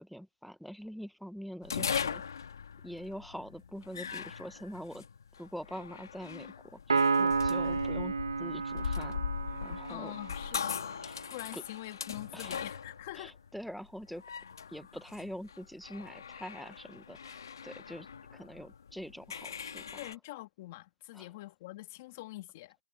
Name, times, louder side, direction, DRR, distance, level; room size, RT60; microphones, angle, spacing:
voice 1, 0.0-2.2 2.8-5.0 5.4-9.2 9.6-10.1 10.7-11.1 11.5-11.6 12.3-12.7 13.2-14.2 14.7-20.1 21.1-21.3, equal, ahead, 0.9 m, -45 dB
sound 1, 1.6-20.1, left 7 dB, 65° left, 1.7 m, -40 dB
Piano, 6.9-10.5, right 4 dB, 85° right, 0.9 m, -31 dB
voice 2, 9.9-13.3 19.9-22.8, left 18 dB, 30° left, 3.0 m, -45 dB
hypercardioid pair, 160°, 2 cm